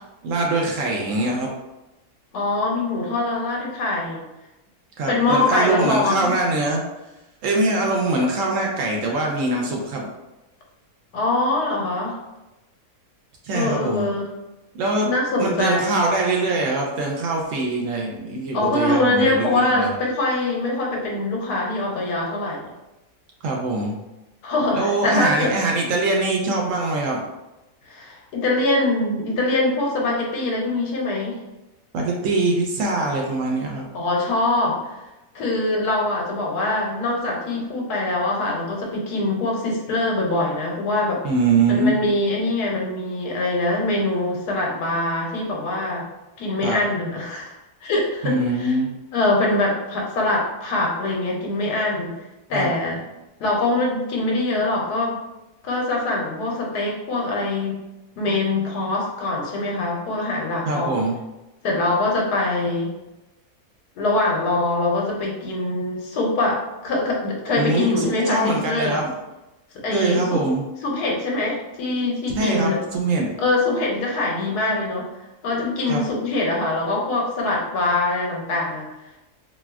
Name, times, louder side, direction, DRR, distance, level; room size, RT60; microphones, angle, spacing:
voice 1, 0.2-1.5 5.0-6.8 7.4-10.1 13.4-14.1 14.7-15.1 15.4-19.9 23.4-24.0 24.7-27.2 31.9-33.8 41.2-42.0 46.6-46.8 48.2-48.9 52.5-52.7 60.7-61.2 67.6-69.1 69.9-70.6 72.4-73.3 75.9-76.0, right 2 dB, 65° right, 0 dB, 0.9 m, -23 dB
voice 2, 2.3-4.2 5.1-6.4 11.1-12.2 13.5-14.2 15.0-16.0 18.5-22.7 24.4-25.6 27.8-31.4 33.9-35.0 35.3-41.2 41.7-46.0 46.4-47.5 47.8-48.8 49.1-52.1 52.5-53.0 53.4-55.2 55.6-57.8 58.2-61.0 61.6-62.9 64.0-69.0 69.7-70.4 70.8-72.8 73.4-75.1 75.4-78.9, left 2 dB, 85° left, -1 dB, 1.3 m, -23 dB
4.1 x 2.3 x 2.3 m, 0.99 s
omnidirectional pair, 1.6 m